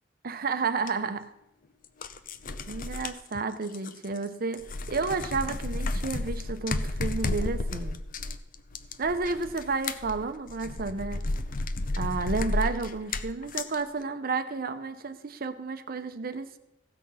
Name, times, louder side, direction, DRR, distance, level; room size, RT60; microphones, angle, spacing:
voice 1, 0.2-1.3 2.7-8.0 9.0-11.2 12.0-16.6, right 4 dB, 50° right, 10 dB, 0.8 m, -31 dB
sound 1, 0.9-1.0 1.8-4.3 4.5-13.8, left 2 dB, 50° left, 0.6 m, -32 dB
15.5 x 6.3 x 5.6 m, 0.83 s
head